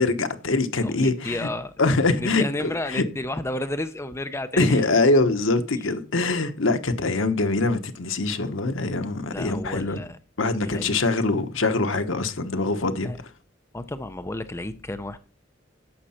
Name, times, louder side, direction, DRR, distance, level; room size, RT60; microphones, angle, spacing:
voice 1, 0.0-1.4 1.8-3.0 4.6-10.0 10.4-13.1, left 3 dB, 80° left, 1.1 m, -23 dB
voice 2, 0.8-1.7 2.2-4.9 9.3-10.2 10.6-11.0 13.0-13.2 13.7-15.2, left 1 dB, 15° left, 0.6 m, -31 dB
11.5 x 7.5 x 4.3 m
head